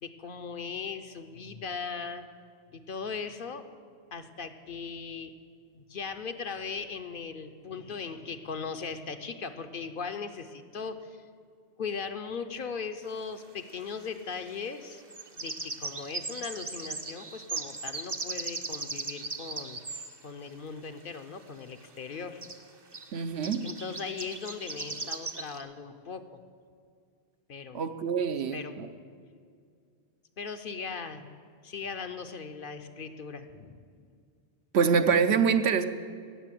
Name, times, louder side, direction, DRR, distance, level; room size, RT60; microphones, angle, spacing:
voice 1, 0.0-2.3 2.7-3.7 4.1-5.3 5.7-11.2 11.8-15.0 15.4-22.5 23.6-26.4 27.5-27.8 28.5-28.8 30.4-31.3 31.6-33.8, left 5 dB, 55° left, 8 dB, 0.8 m, -38 dB
sound 1, 13.0-13.1 14.9-20.1 21.8-21.9 22.1-22.2 22.4-22.6 22.9-23.1 23.4-25.6, right 3 dB, 25° right, 0.7 m, -38 dB
voice 2, 23.1-23.6 27.7-28.9 34.7-35.9, right 6 dB, 75° right, 9 dB, 1.0 m, -25 dB
16.5 x 7.0 x 7.5 m, 2.2 s
omnidirectional pair, 1.1 m